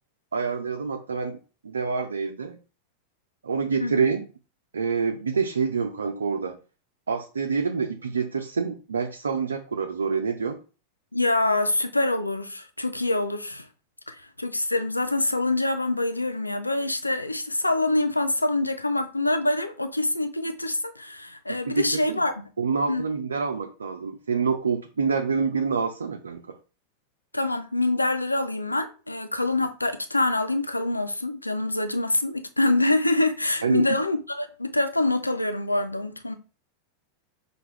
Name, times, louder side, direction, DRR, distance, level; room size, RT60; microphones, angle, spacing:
voice 1, 0.3-2.6 3.4-4.3 4.7-6.6 7.1-10.6 21.7-22.2 22.6-26.6 33.6-34.0, right 5 dB, 70° right, 0.5 m, -27 dB
voice 2, 11.1-13.7 14.1-22.4 22.9-23.0 27.3-36.4, left 2 dB, 85° left, 0.5 m, -25 dB
5.9 x 2.6 x 3.2 m
figure-of-eight pair, 90°, 0 cm